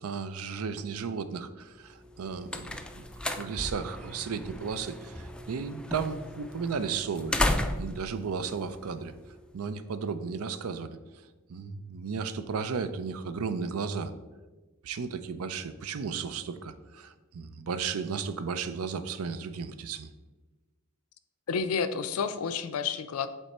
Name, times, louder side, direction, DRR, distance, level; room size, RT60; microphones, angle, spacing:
voice 1, 0.0-3.0 3.3-7.3 7.8-9.1 9.5-11.0 11.5-14.1 14.8-20.1, right 5 dB, 80° right, 12 dB, 0.5 m, -34 dB
sound 1, 2.0-9.5, left 1 dB, 5° left, 0.3 m, -35 dB
voice 2, 21.5-23.3, left 6 dB, 80° left, 11 dB, 0.5 m, -30 dB
8.1 x 3.3 x 4.2 m, 1.2 s
head